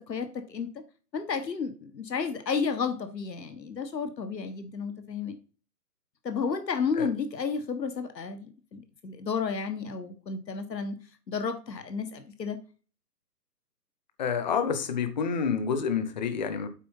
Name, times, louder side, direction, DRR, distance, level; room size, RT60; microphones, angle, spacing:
voice 1, 0.1-0.7 1.1-5.4 6.2-11.0 11.3-12.6, left 5 dB, 85° left, 1.6 m, -32 dB
voice 2, 14.2-16.7, left 6 dB, 30° left, 0.8 m, -28 dB
8.4 x 4.0 x 5.4 m
hypercardioid pair, 150°, 48 cm